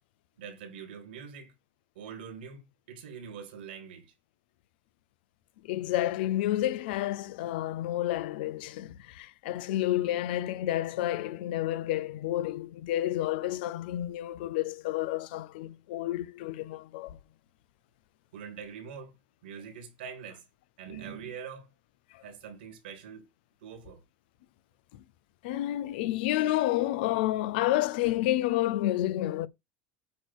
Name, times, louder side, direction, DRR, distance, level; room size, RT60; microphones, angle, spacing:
voice 1, 0.4-1.5 1.9-4.1 18.3-19.2 19.4-20.4 20.8-21.7 22.2-23.2 23.6-24.0, right 7 dB, 85° right, 2.5 m, -43 dB
voice 2, 5.6-17.2 22.1-22.2 24.9-25.0 25.4-29.5, left 14 dB, 75° left, 0.7 m, -30 dB
8.6 x 3.2 x 6.2 m
supercardioid pair, 95°, 5 cm